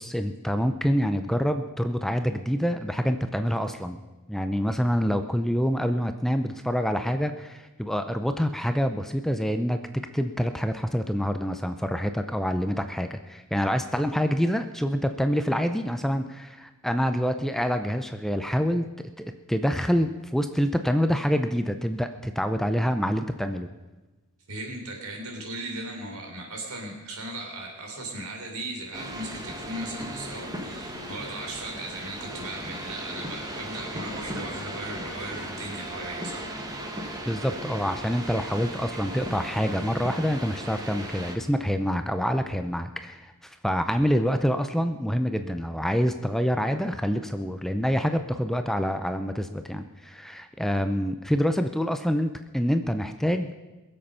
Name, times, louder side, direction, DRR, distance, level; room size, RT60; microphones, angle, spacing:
voice 1, 0.0-4.0 4.3-23.7 37.3-53.5, equal, ahead, 8 dB, 0.5 m, -26 dB
voice 2, 24.5-36.5, right 2 dB, 75° right, 1 dB, 3.5 m, -37 dB
sound 1, 28.9-41.4, right 1 dB, 15° right, 1.4 m, -37 dB
22.0 x 7.7 x 5.6 m, 1.1 s
head